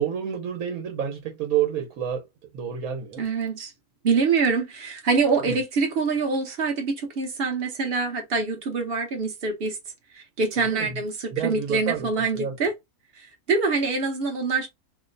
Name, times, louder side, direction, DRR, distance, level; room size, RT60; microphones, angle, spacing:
voice 1, 0.0-2.3 2.5-3.2 5.5-5.6 10.6-11.0 11.3-12.5, right 9 dB, 85° right, 1.3 m, -29 dB
voice 2, 3.2-3.7 4.0-9.8 10.1-12.7 13.2-14.7, right 4 dB, 50° right, 1.0 m, -25 dB
2.9 x 2.1 x 3.8 m
omnidirectional pair, 1.5 m